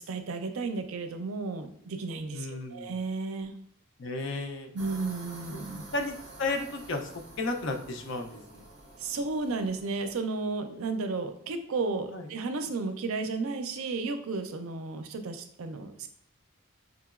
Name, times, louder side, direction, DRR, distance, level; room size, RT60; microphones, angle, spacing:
voice 1, 0.1-3.5 4.7-5.8 9.0-16.1, right 3 dB, 80° right, 7 dB, 0.5 m, -33 dB
voice 2, 2.3-2.9 4.0-4.7 5.9-7.1 7.4-8.7 12.1-12.3, left 2 dB, 60° left, 5 dB, 0.5 m, -33 dB
sound 1, 4.8-10.2, right 2 dB, 50° right, 0.9 m, -48 dB
4.9 x 2.9 x 2.4 m, 0.67 s
head